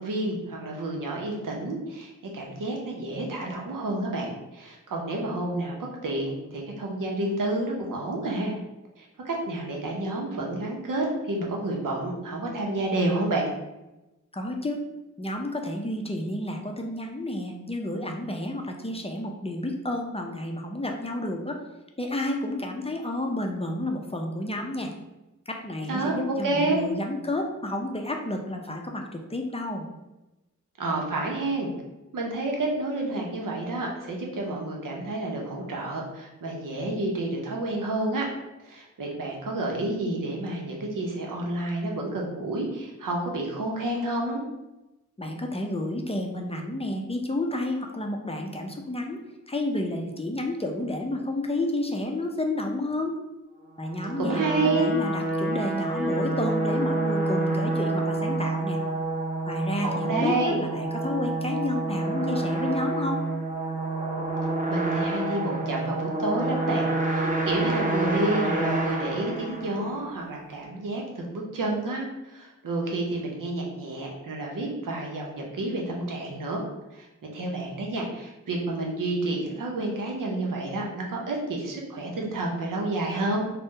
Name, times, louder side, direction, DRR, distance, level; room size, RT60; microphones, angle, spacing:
voice 1, 0.0-5.7 6.0-8.5 9.0-13.5 25.9-26.8 30.8-31.7 32.1-38.3 38.6-44.4 54.2-54.9 59.8-60.6 64.7-76.6 76.9-77.1 77.3-83.4, right 2 dB, 90° right, -1 dB, 0.6 m, -29 dB
voice 2, 14.3-14.8 15.2-21.6 22.0-24.9 25.5-29.9 45.2-49.2 49.5-53.1 53.8-58.8 59.5-63.2, left 1 dB, 20° left, 2 dB, 0.4 m, -30 dB
sound 1, 53.8-70.1, right 2 dB, 25° right, 0.6 m, -28 dB
2.6 x 2.1 x 3.6 m, 1.0 s
cardioid pair, 40°, 31 cm